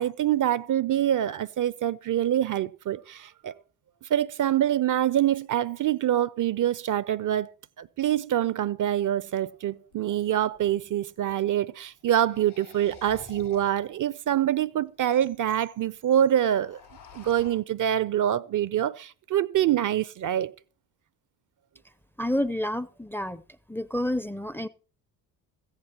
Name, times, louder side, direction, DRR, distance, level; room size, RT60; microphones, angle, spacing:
voice 1, 0.0-3.5 4.0-7.5 7.8-16.8 17.1-20.5, right 11 dB, 45° right, 0.6 m, -25 dB
sound 1, 9.3-9.4 9.9-11.1 12.0-14.0 14.6-14.7 14.9-15.0 15.2-15.6 15.9-16.1 16.4-17.5, left 6 dB, 85° left, 7.4 m, -50 dB
voice 2, 22.2-23.4 23.7-24.7, left 1 dB, 5° left, 0.5 m, -29 dB
16.5 x 14.5 x 2.9 m
hypercardioid pair, 50°, 46 cm